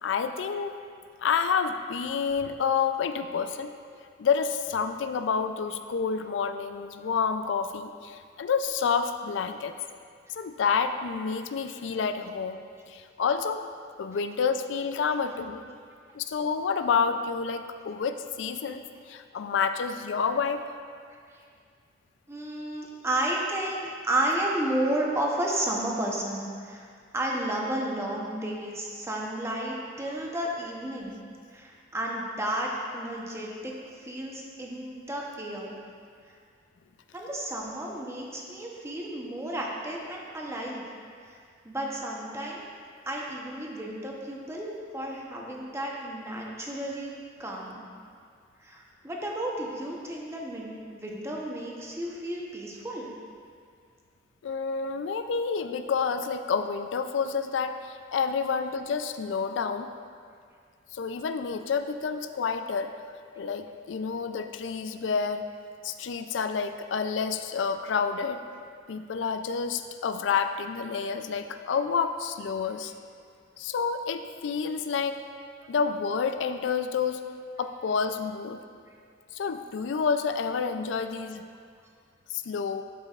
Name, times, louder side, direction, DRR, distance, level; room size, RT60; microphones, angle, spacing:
voice 1, 0.0-0.7 1.2-3.7 4.2-9.8 10.4-13.6 14.0-15.7 16.1-20.6 54.4-59.9 60.9-62.9 63.4-65.5 65.8-68.4 68.9-72.9 73.6-75.3 75.7-77.2 77.6-78.6 79.3-81.4 82.3-82.8, left 6 dB, 80° left, 9 dB, 0.4 m, -29 dB
voice 2, 22.3-26.9 27.1-31.2 31.5-35.8 37.1-40.8 41.3-41.4 41.6-42.7 43.1-47.1 47.4-47.8 48.6-53.1 72.7-72.8, right 1 dB, 15° right, -2 dB, 0.8 m, -32 dB
11.5 x 5.3 x 2.4 m, 2.2 s
head